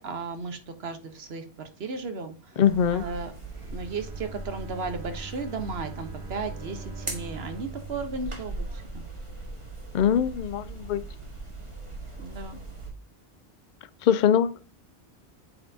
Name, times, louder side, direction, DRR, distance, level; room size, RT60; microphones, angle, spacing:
voice 1, 0.0-2.6 2.9-3.3 3.7-9.0 12.2-12.6, right 4 dB, 75° right, 1.3 m, -35 dB
voice 2, 2.6-3.0 9.9-11.0 14.0-14.6, left 9 dB, 60° left, 0.6 m, -22 dB
sound 1, 2.6-12.9, right 2 dB, 30° right, 1.7 m, -39 dB
Bowed string instrument, 3.5-9.5, right 3 dB, 90° right, 1.8 m, -44 dB
8.5 x 4.4 x 2.7 m
omnidirectional pair, 1.1 m